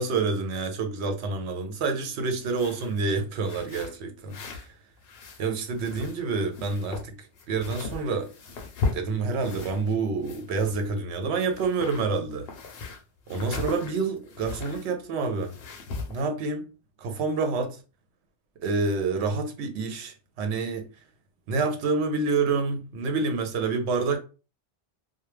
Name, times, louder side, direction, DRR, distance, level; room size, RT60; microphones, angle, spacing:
voice 1, 0.0-4.6 5.4-7.2 7.5-8.3 8.9-12.5 13.3-15.5 16.1-16.6 17.0-17.8 18.6-20.9 21.5-24.2, right 4 dB, 80° right, 0.9 m, -28 dB
sound 1, 2.4-3.0 3.4-4.7 5.0-6.3 6.5-9.9 10.2-11.1 11.4-14.9 15.4-16.2, left 4 dB, 65° left, 0.8 m, -37 dB
2.2 x 2.1 x 3.0 m
omnidirectional pair, 1.1 m